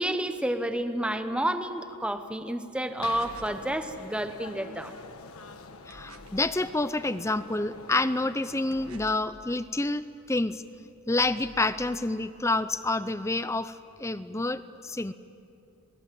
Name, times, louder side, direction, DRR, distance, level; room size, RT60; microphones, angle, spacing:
voice 1, 0.0-4.9, right 1 dB, 5° right, 8 dB, 0.9 m, -30 dB
sound 1, 3.0-9.1, left 4 dB, 80° left, 1.3 m, -46 dB
sound 2, 3.1-3.7 5.9-6.5 8.7-9.4 11.2-11.9, right 3 dB, 80° right, 1.5 m, -49 dB
voice 2, 5.9-10.6 11.1-15.1, left 2 dB, 15° left, 13 dB, 0.6 m, -28 dB
27.5 x 19.5 x 7.8 m, 2.6 s
head